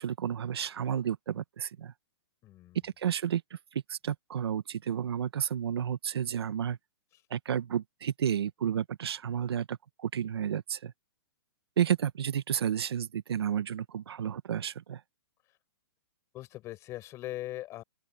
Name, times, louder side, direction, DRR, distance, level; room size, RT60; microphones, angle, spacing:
voice 1, 0.0-1.9 2.8-3.4 3.7-6.8 7.3-10.9 11.8-15.0, right 9 dB, 80° right, 1.5 m, -31 dB
voice 2, 2.4-2.8 7.1-7.2 16.3-17.8, left 15 dB, 20° left, 6.2 m, -40 dB
open air
hypercardioid pair, 165°, 13 cm